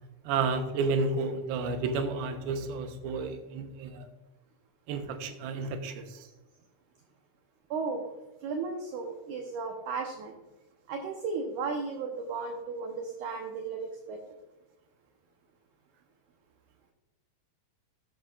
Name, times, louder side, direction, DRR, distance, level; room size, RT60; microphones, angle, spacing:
voice 1, 0.3-4.1 4.9-6.3, right 4 dB, 90° right, 7 dB, 2.8 m, -31 dB
voice 2, 7.7-8.0 8.4-10.4 10.9-14.2, right 4 dB, 70° right, 3 dB, 2.1 m, -35 dB
13.5 x 7.8 x 2.4 m, 1.1 s
omnidirectional pair, 4.3 m